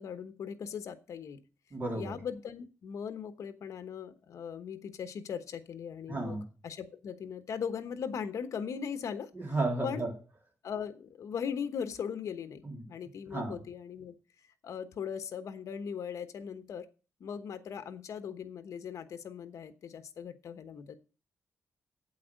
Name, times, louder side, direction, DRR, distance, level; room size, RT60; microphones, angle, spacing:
voice 1, 0.0-1.4 1.9-6.4 6.6-9.3 9.8-10.0 10.6-12.6 12.9-14.1 14.6-16.9 17.2-21.0, left 7 dB, 65° left, 10 dB, 1.1 m, -39 dB
voice 2, 1.7-2.2 6.1-6.5 9.3-10.1 12.6-13.6, right 2 dB, 35° right, 0 dB, 3.7 m, -34 dB
8.5 x 8.2 x 6.4 m, 0.35 s
wide cardioid pair, 150°, 6 cm